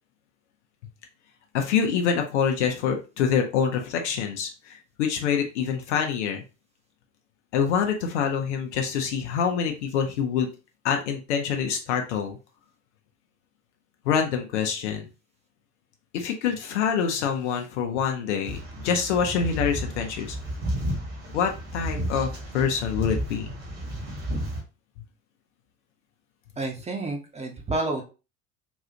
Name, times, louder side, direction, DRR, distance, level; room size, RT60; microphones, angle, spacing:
voice 1, 1.5-6.4 7.5-10.5 10.8-12.4 14.0-15.1 16.1-20.4 21.3-23.5, left 7 dB, 60° left, 3 dB, 0.8 m, -26 dB
sound 1, 18.4-24.6, equal, 60° right, 1.6 m, -32 dB
voice 2, 26.6-28.0, right 2 dB, 15° right, 1 dB, 0.8 m, -29 dB
4.1 x 2.4 x 2.8 m, 0.31 s
figure-of-eight pair, 65°, 39 cm